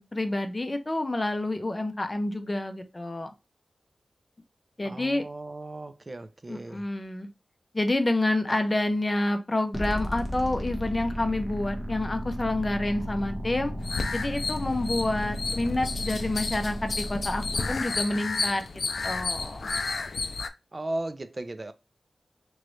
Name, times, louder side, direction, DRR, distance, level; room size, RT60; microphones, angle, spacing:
voice 1, 0.0-3.3 4.8-5.3 6.5-7.3 7.7-13.7 14.1-18.6 19.0-19.7, left 2 dB, 30° left, 0.6 m, -28 dB
voice 2, 4.8-6.8 20.7-21.7, right 2 dB, 35° right, 0.4 m, -36 dB
sound 1, 9.7-17.7, equal, 15° right, 1.0 m, -34 dB
sound 2, 13.8-20.5, left 4 dB, 75° left, 0.3 m, -32 dB
3.0 x 2.4 x 3.1 m
wide cardioid pair, 70°, 0 cm